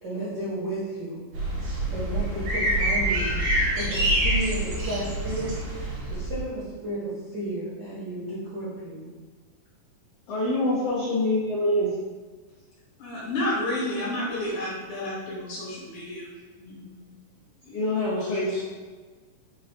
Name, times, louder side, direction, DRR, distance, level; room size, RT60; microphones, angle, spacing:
voice 1, 0.0-1.2 1.9-3.4 3.7-9.1, right 1 dB, 55° right, -12 dB, 1.1 m, -33 dB
sound 1, 1.3-6.4, right 1 dB, 80° right, 2.8 m, -26 dB
voice 2, 10.3-11.9 17.6-18.6, left 1 dB, 85° left, -8 dB, 1.3 m, -25 dB
voice 3, 13.0-16.3 16.6-17.0 18.5-18.6, left 1 dB, 70° left, -6 dB, 2.2 m, -31 dB
5.8 x 2.3 x 3.4 m, 1.4 s
omnidirectional pair, 4.0 m